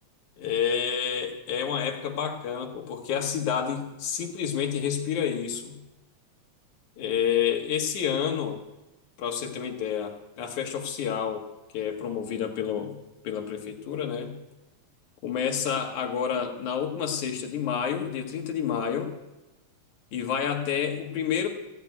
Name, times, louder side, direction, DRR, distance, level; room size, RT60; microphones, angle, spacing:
voice 1, 0.4-5.8 7.0-8.6 9.2-11.4 11.7-12.9 13.2-14.4 15.2-19.1 20.1-21.5, left 8 dB, 85° left, 3 dB, 3.1 m, -29 dB
15.5 x 6.9 x 9.6 m, 1.0 s
omnidirectional pair, 3.3 m